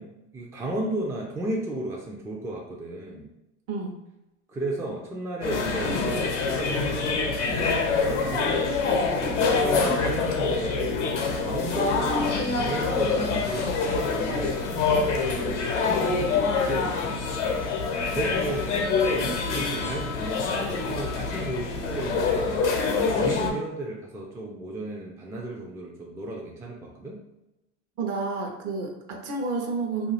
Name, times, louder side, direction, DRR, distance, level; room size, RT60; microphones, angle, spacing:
voice 1, 0.0-3.3 4.5-8.6 9.2-11.1 11.4-22.6 23.0-27.2, right 1 dB, 10° right, -2 dB, 0.4 m, -34 dB
sound 1, 5.4-23.5, left 4 dB, 75° left, 0.8 m, -25 dB
voice 2, 28.0-30.1, right 4 dB, 45° right, 3 dB, 0.8 m, -30 dB
2.5 x 2.3 x 3.2 m, 0.92 s
hypercardioid pair, 85°, 35 cm